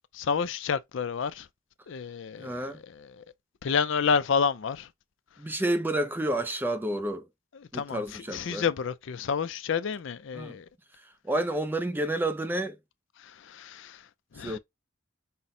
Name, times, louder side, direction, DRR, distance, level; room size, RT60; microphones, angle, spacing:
voice 1, 0.2-1.4 1.9-2.6 3.6-4.9 7.7-8.0 8.3-10.6 13.5-13.9 14.4-14.6, left 6 dB, 60° left, 0.4 m, -29 dB
voice 2, 2.4-2.8 5.4-7.3 7.7-8.7 10.3-10.6 11.2-12.8 14.4-14.6, right 1 dB, 10° right, 0.3 m, -30 dB
5.6 x 2.1 x 3.7 m
head